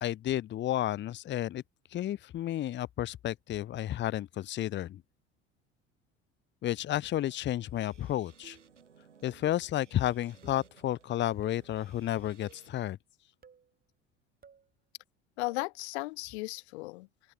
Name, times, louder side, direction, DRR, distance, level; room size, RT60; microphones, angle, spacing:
voice 1, 0.0-1.6 1.9-5.0 6.6-8.6 9.2-13.0, left 13 dB, 30° left, 0.6 m, -32 dB
sound 1, 7.0-12.8, right 6 dB, 90° right, 6.3 m, -60 dB
sound 2, 8.4-8.8 9.4-9.8 10.4-10.7 11.4-11.7 12.4-12.8 13.4-13.7 14.4-14.7 15.4-15.7, right 6 dB, 25° right, 2.1 m, -57 dB
voice 2, 15.4-17.3, left 22 dB, 65° left, 0.6 m, -36 dB
open air
hypercardioid pair, 65°, 35 cm